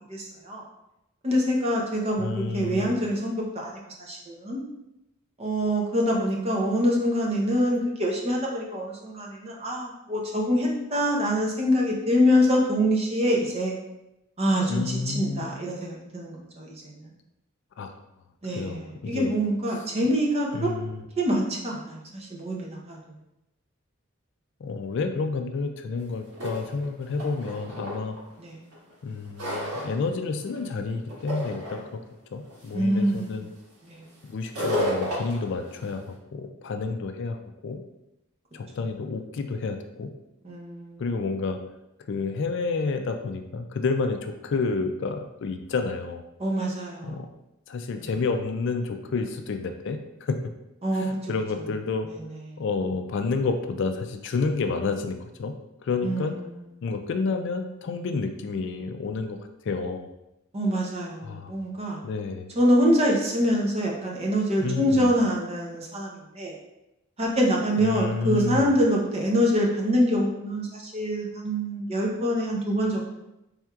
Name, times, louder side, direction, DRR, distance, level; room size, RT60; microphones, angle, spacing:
voice 1, 0.1-0.6 1.2-2.3 2.5-4.6 5.4-13.7 14.4-17.1 18.4-20.7 21.2-23.0 28.4-28.6 32.7-33.3 33.8-34.0 40.4-41.0 46.4-47.2 48.0-48.1 50.8-51.3 52.1-52.2 56.0-56.3 60.5-62.0 62.6-66.5 67.2-73.0, equal, 30° right, -2 dB, 0.7 m, -25 dB
voice 2, 2.2-2.9 14.7-15.5 17.8-18.0 18.5-19.3 20.5-21.0 24.6-28.2 29.0-32.0 32.3-33.5 34.2-36.0 36.3-37.8 38.5-40.1 41.0-41.6 42.1-46.2 47.0-47.3 47.7-50.4 50.9-52.1 52.6-55.5 55.8-56.4 56.8-59.4 59.6-60.1 61.2-61.5 62.0-62.5 64.6-65.1 67.8-68.7, left 4 dB, 55° left, 6 dB, 0.3 m, -30 dB
sound 1, 26.0-26.1 26.3-28.2 28.7-30.0 30.4-30.8 31.1-31.8 32.5-32.7 33.1-33.4 34.4-36.0, equal, 90° right, 1.4 m, -31 dB
4.3 x 3.5 x 2.3 m, 0.89 s
head